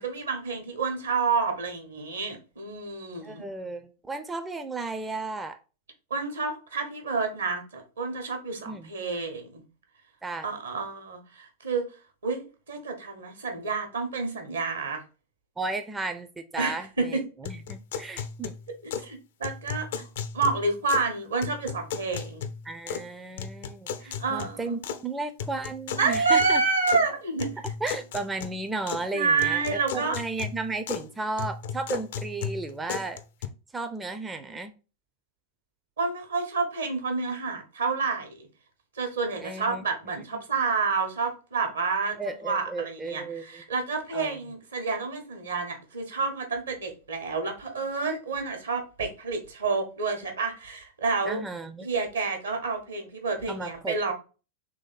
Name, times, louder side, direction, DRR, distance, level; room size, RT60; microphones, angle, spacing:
voice 1, 0.0-3.4 6.1-9.6 10.4-11.8 12.2-12.4 12.7-15.0 16.6-17.2 18.8-20.0 20.3-22.4 24.0-24.7 26.0-27.6 29.1-30.2 36.0-38.5 39.0-42.2 42.4-51.4 51.8-54.1, right 4 dB, 70° right, 1.1 m, -29 dB
voice 2, 3.2-5.6 8.7-8.9 10.2-10.5 15.6-18.6 22.6-26.6 27.8-33.2 33.7-34.7 39.4-39.8 40.3-40.4 42.2-43.6 44.1-44.4 51.2-51.9 53.5-54.1, right 3 dB, 10° right, 0.4 m, -34 dB
sound 1, 17.4-19.1 19.4-21.1 21.4-23.1 23.4-25.0 25.4-27.0 27.4-29.1 29.4-31.1 31.4-33.5, left 7 dB, 55° left, 0.4 m, -36 dB
3.5 x 3.2 x 4.0 m
figure-of-eight pair, 90°, 0 cm